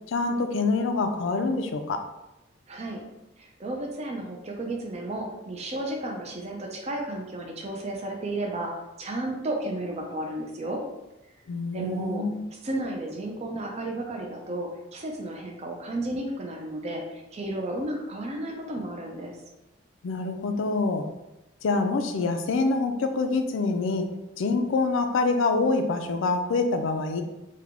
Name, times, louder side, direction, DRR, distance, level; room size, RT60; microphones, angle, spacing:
voice 1, 0.1-2.0 11.5-12.4 20.0-21.1 21.6-24.1 24.4-27.2, left 3 dB, 80° left, 6 dB, 0.4 m, -26 dB
voice 2, 2.7-3.0 3.4-8.7 9.0-10.8 11.7-12.3 12.6-19.4, right 1 dB, 35° right, 1 dB, 0.5 m, -33 dB
3.3 x 2.2 x 3.6 m, 0.96 s
head